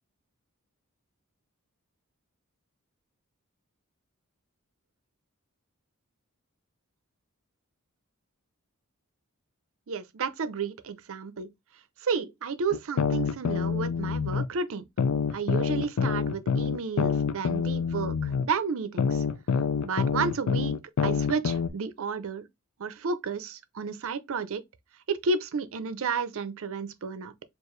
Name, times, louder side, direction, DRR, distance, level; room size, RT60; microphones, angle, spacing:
voice 1, 9.9-11.5 12.0-14.8 15.3-19.2 19.8-20.7 21.0-22.4 22.8-24.6 25.1-27.3, right 5 dB, 65° right, 0.6 m, -32 dB
sound 1, 12.7-14.5 15.0-18.5 19.0-21.7, left 6 dB, 75° left, 0.4 m, -26 dB
4.6 x 2.5 x 3.1 m
head